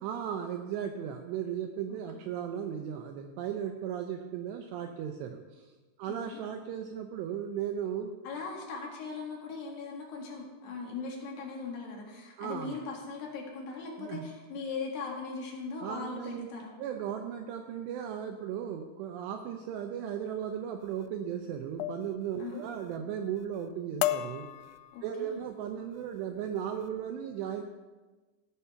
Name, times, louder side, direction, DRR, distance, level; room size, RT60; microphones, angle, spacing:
voice 1, 0.0-5.7 6.0-8.2 12.4-12.8 14.0-14.3 15.8-16.5 16.8-24.5 25.0-27.6, right 9 dB, 85° right, 5 dB, 2.5 m, -36 dB
voice 2, 8.3-16.7 22.4-22.6 24.9-25.4, left 4 dB, 65° left, -1 dB, 3.5 m, -39 dB
sound 1, 20.8-21.1 21.8-22.1 22.5-23.0 23.4-23.7 24.0-25.3 25.9-26.2 26.6-26.9, left 14 dB, 85° left, 2.7 m, -35 dB
16.5 x 5.6 x 5.7 m, 1.3 s
omnidirectional pair, 5.6 m